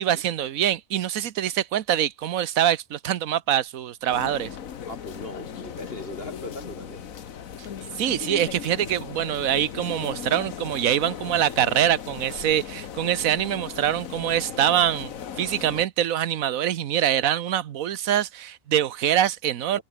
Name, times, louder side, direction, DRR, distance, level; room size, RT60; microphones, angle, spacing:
voice 1, 0.0-4.6 8.0-15.1 15.4-19.8, right 11 dB, 85° right, 1.3 m, -24 dB
sound 1, 4.1-15.9, left 8 dB, 80° left, 1.6 m, -37 dB
voice 2, 4.9-7.0 19.7-19.8, left 1 dB, 45° left, 7.3 m, -39 dB
omnidirectional pair, 1.4 m